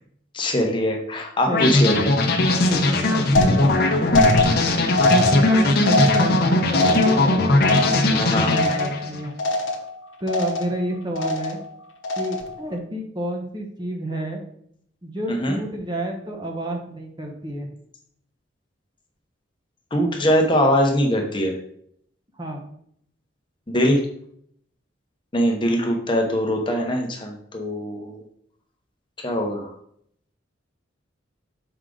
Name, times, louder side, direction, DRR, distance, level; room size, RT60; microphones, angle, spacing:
voice 1, 0.3-2.1 8.2-8.5 15.3-15.6 19.9-21.5 23.7-24.0 25.3-28.2 29.2-29.7, equal, 25° left, 1 dB, 0.9 m, -22 dB
sound 1, 1.5-9.2, left 2 dB, 55° left, 0.8 m, -19 dB
voice 2, 1.5-1.9 2.7-4.2 5.1-9.3 10.2-11.6 12.2-14.4 15.0-17.7 22.3-22.6, right 1 dB, 25° right, 1 dB, 1.0 m, -30 dB
sound 2, 3.4-9.1 9.4-10.0 10.3-10.8 11.2-11.7 12.0-12.6, left 2 dB, 90° left, 0.9 m, -23 dB
6.4 x 4.9 x 3.8 m, 0.67 s
head